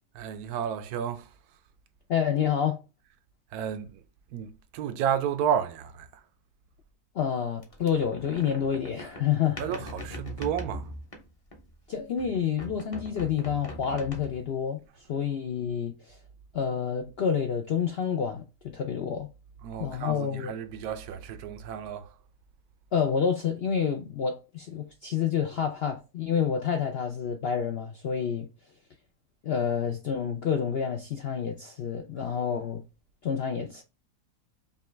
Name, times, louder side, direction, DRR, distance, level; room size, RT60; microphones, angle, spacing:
voice 1, 0.1-1.6 3.5-4.0 4.3-6.3 9.6-10.9 19.6-22.2, right 8 dB, 80° right, 1.1 m, -32 dB
voice 2, 2.1-2.8 7.2-9.6 11.9-14.8 15.1-16.2 16.5-19.3 19.8-20.5 22.9-28.5 29.4-32.8 33.2-33.8, left 7 dB, 70° left, 0.5 m, -28 dB
sound 1, 7.6-11.8 12.2-14.6, equal, 30° left, 0.7 m, -41 dB
5.3 x 2.3 x 3.1 m
omnidirectional pair, 1.6 m